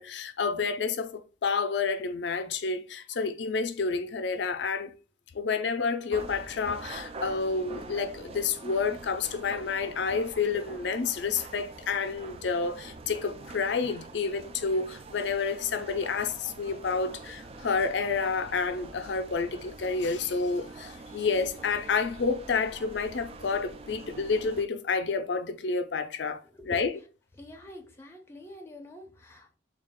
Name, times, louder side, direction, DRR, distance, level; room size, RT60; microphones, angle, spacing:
voice 1, 0.0-4.9 5.3-27.0, left 4 dB, 65° left, 0.5 m, -29 dB
sound 1, 6.1-24.6, right 3 dB, 30° right, 0.3 m, -45 dB
voice 2, 27.4-29.5, left 1 dB, 15° left, 0.6 m, -46 dB
3.7 x 2.4 x 3.6 m
head